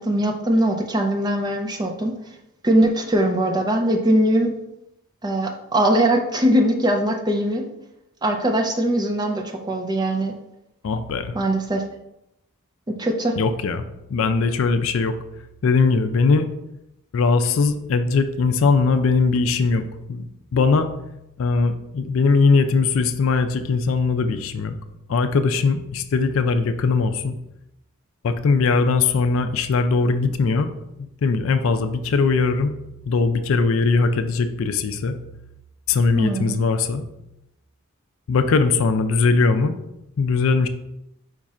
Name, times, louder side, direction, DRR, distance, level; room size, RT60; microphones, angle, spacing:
voice 1, 0.0-2.2 2.6-4.5 5.2-7.7 8.2-10.3 11.3-11.8 12.9-13.4 36.1-36.6, right 1 dB, 20° right, 3 dB, 0.4 m, -21 dB
voice 2, 10.8-11.3 13.4-13.8 14.1-15.1 15.6-16.5 17.1-20.9 21.4-24.7 25.1-27.3 28.2-30.7 31.0-32.8 33.1-35.1 35.9-37.0 38.3-39.8 40.2-40.7, left 4 dB, 70° left, 9 dB, 0.4 m, -20 dB
5.2 x 2.4 x 4.1 m, 0.86 s
head